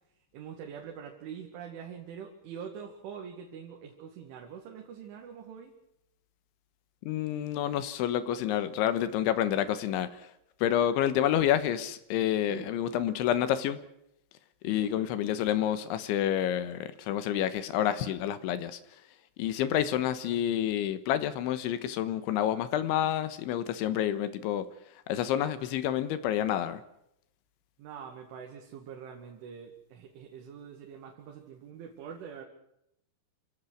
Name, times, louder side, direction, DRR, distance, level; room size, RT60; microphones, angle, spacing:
voice 1, 0.3-5.8 12.5-12.7 14.7-15.1 27.8-32.5, right 7 dB, 75° right, 1 dB, 4.6 m, -44 dB
voice 2, 7.1-10.1 10.6-13.8 14.6-18.8 19.4-24.7 25.1-26.8, left 11 dB, 80° left, 13 dB, 3.5 m, -28 dB
27.5 x 17.0 x 6.4 m, 0.78 s
omnidirectional pair, 5.6 m